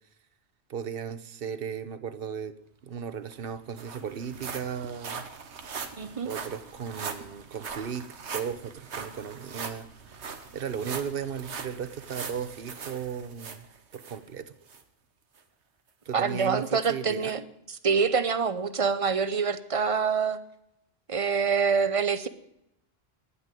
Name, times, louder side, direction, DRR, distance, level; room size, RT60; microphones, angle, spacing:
voice 1, 0.7-5.2 6.3-8.1 8.3-9.9 10.5-13.7 13.9-14.5 16.1-17.3, right 7 dB, 60° right, 13 dB, 1.1 m, -36 dB
sound 1, 3.0-3.1 3.3-14.2 14.7-14.8 15.4-15.5, right 5 dB, 90° right, 1.5 m, -40 dB
voice 2, 6.0-6.3 16.1-17.4 17.8-20.4 21.1-22.3, right 6 dB, 35° right, 13 dB, 0.8 m, -26 dB
10.0 x 9.8 x 9.0 m, 0.80 s
omnidirectional pair, 1.1 m